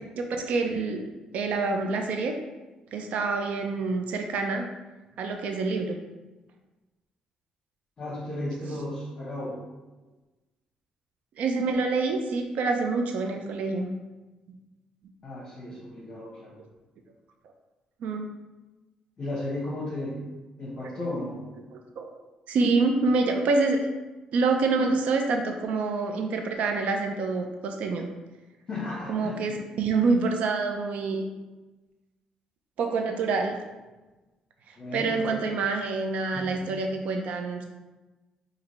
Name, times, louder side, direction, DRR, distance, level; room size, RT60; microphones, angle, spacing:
voice 1, 0.2-2.4 2.9-4.6 5.2-6.0 11.4-13.9 18.0-18.3 21.7-22.1 22.5-23.8 24.3-28.1 29.1-31.2 32.8-33.6 34.9-37.6, right 3 dB, 75° right, 4 dB, 0.5 m, -26 dB
voice 2, 8.0-9.6 15.2-16.6 19.2-20.3 20.6-21.4 28.7-29.6 34.8-35.4 36.3-36.6, left 1 dB, 40° left, -8 dB, 1.1 m, -34 dB
5.0 x 2.7 x 3.1 m, 1.1 s
cardioid pair, 115°, 2 cm